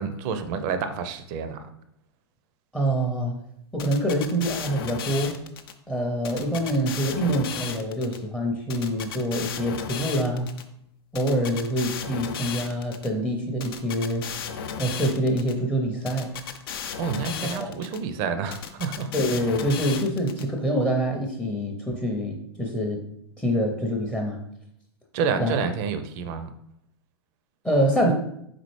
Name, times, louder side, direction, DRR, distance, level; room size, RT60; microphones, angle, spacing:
voice 1, 0.0-1.6 17.0-19.1 25.1-26.5, right 6 dB, 40° right, 9 dB, 0.5 m, -29 dB
voice 2, 2.7-3.4 3.7-5.4 5.9-10.5 11.1-14.3 14.8-16.3 17.4-17.7 19.1-23.0 23.4-24.4 25.4-25.6 27.6-28.1, equal, 5° left, 1 dB, 0.6 m, -25 dB
sound 1, 3.8-5.7 6.2-8.2 8.7-10.6 11.2-13.1 13.6-15.5 16.1-18.0 18.5-20.4, left 8 dB, 55° left, 0.5 m, -34 dB
4.2 x 3.9 x 3.2 m, 0.74 s
figure-of-eight pair, 95°, 14 cm